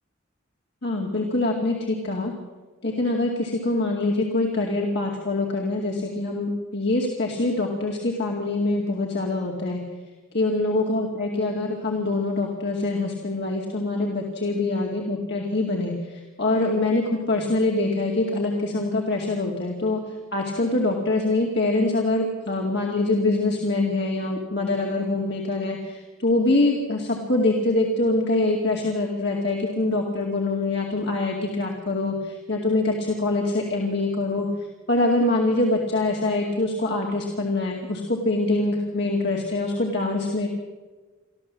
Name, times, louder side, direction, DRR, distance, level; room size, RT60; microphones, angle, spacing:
voice 1, 0.8-2.3 2.8-9.8 10.3-34.5 34.9-40.5, left 2 dB, 55° left, 0 dB, 2.3 m, -24 dB
24.5 x 14.5 x 7.4 m, 1.3 s
head